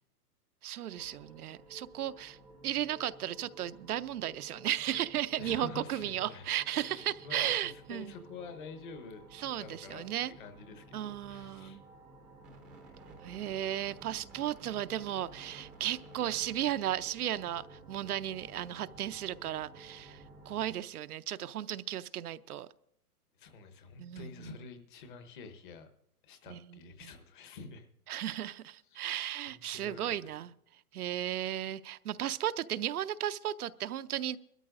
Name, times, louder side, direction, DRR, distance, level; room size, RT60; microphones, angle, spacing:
voice 1, 0.6-2.4 2.6-8.1 9.3-10.3 10.9-11.8 13.2-20.2 20.5-22.7 24.0-24.5 26.5-27.1 28.1-30.5 30.9-34.4, right 12 dB, 70° right, 13 dB, 0.6 m, -35 dB
sound 1, 0.9-20.8, right 2 dB, ahead, 0.6 m, -54 dB
voice 2, 5.4-9.3 9.5-10.0 10.4-11.8 12.8-12.9 23.4-25.9 26.2-27.8 28.9-29.1 29.5-30.3, left 5 dB, 30° left, 8 dB, 1.1 m, -48 dB
23.0 x 13.0 x 2.5 m, 0.77 s
hypercardioid pair, 160°, 47 cm